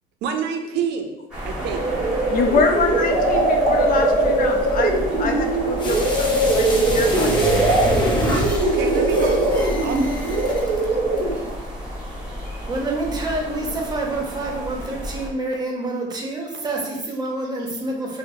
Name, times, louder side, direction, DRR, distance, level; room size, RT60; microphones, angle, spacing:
voice 1, 0.2-1.2 1.4-1.8 8.6-10.2 11.3-11.5, right 6 dB, 85° right, 5 dB, 0.5 m, -28 dB
sound 1, 1.3-15.3, equal, 5° right, 1.5 m, -31 dB
sound 2, 1.6-11.5, right 2 dB, 50° right, 0.7 m, -21 dB
voice 2, 2.3-7.7, left 4 dB, 55° left, 4 dB, 0.5 m, -25 dB
sound 3, 5.8-10.8 11.2-11.3, equal, 25° left, 0.8 m, -26 dB
voice 3, 12.7-18.2, right 2 dB, 25° right, 0 dB, 0.8 m, -27 dB
5.0 x 2.1 x 2.6 m, 0.93 s
cardioid pair, 110°, 17 cm